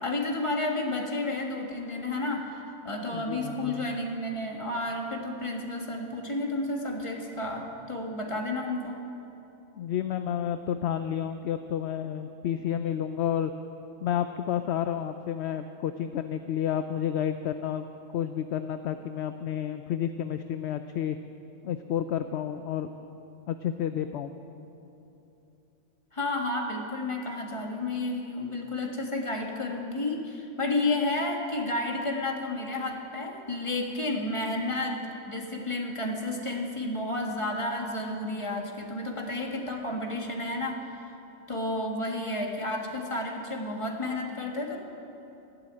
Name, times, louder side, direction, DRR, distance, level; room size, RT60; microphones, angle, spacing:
voice 1, 0.0-9.0 26.1-35.0 35.3-40.9 41.5-44.8, left 2 dB, 25° left, 1 dB, 1.7 m, -31 dB
voice 2, 3.1-4.0 9.7-13.5 14.0-17.9 18.1-21.2 21.6-22.9 23.5-24.3, left 9 dB, 65° left, 9 dB, 0.8 m, -30 dB
13.5 x 12.0 x 8.8 m, 2.9 s
omnidirectional pair, 1.3 m